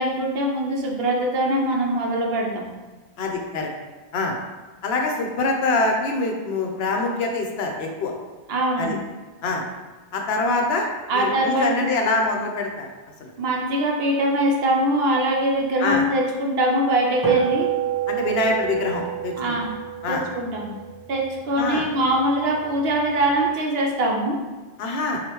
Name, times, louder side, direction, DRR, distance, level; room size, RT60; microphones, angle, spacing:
voice 1, 0.0-2.7 8.5-9.0 11.1-11.9 13.4-17.7 19.4-19.7 20.1-20.8 21.1-24.4, right 1 dB, 65° right, 0 dB, 0.8 m, -22 dB
voice 2, 3.2-3.7 4.1-4.4 4.8-8.1 8.8-9.0 9.4-9.6 10.1-10.9 11.1-12.9 13.2-13.3 15.8-16.0 18.1-19.6 20.0-20.2 21.6-21.8 24.8-25.2, left 3 dB, 70° left, 1 dB, 0.8 m, -24 dB
sound 1, 17.2-21.9, right 10 dB, 20° right, 0.8 m, -27 dB
4.9 x 2.4 x 3.0 m, 1.3 s
omnidirectional pair, 1.1 m